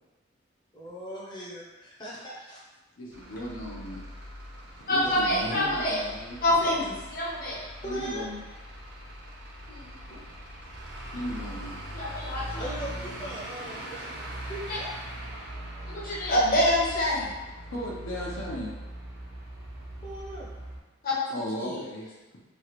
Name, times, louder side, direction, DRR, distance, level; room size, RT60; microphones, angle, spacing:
voice 1, 0.7-2.6 5.0-5.4 7.8-8.3 12.5-14.1 14.5-14.9 20.0-20.5, equal, 20° left, -6 dB, 0.6 m, -39 dB
voice 2, 3.0-4.0 4.8-6.7 7.8-8.4 11.1-11.8 17.7-18.7 21.3-22.1, equal, 85° left, -4 dB, 0.7 m, -36 dB
Truck / Idling, 3.1-20.8, right 1 dB, 55° right, 0.6 m, -41 dB
voice 3, 4.9-6.0 6.4-7.6 9.7-9.9 11.9-12.8 14.7-14.8 15.9-17.3 21.0-21.8, left 1 dB, 50° left, -4 dB, 0.8 m, -26 dB
3.1 x 2.4 x 3.0 m, 1.1 s
head